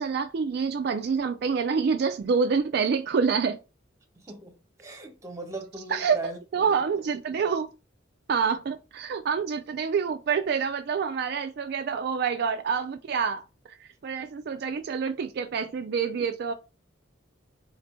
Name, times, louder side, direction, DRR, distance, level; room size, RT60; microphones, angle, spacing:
voice 1, 0.0-3.6 5.9-6.2 6.5-7.7 8.3-16.5, right 6 dB, 55° right, 0.3 m, -27 dB
voice 2, 4.1-6.4 6.7-6.8, right 1 dB, 15° right, 0.9 m, -39 dB
4.3 x 2.6 x 4.2 m
head